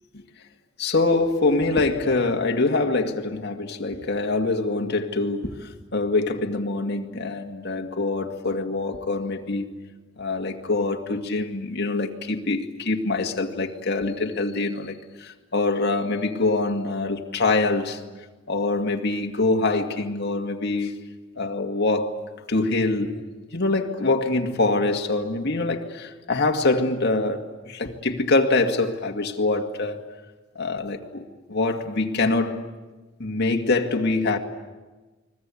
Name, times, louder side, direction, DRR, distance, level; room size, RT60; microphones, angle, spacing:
voice 1, 0.8-9.7 10.2-18.0 18.5-20.9 21.4-22.2 22.5-23.2 23.5-30.0 30.6-32.6 33.2-34.4, left 3 dB, 55° left, 2.1 m, -24 dB
29.5 x 21.5 x 8.5 m
head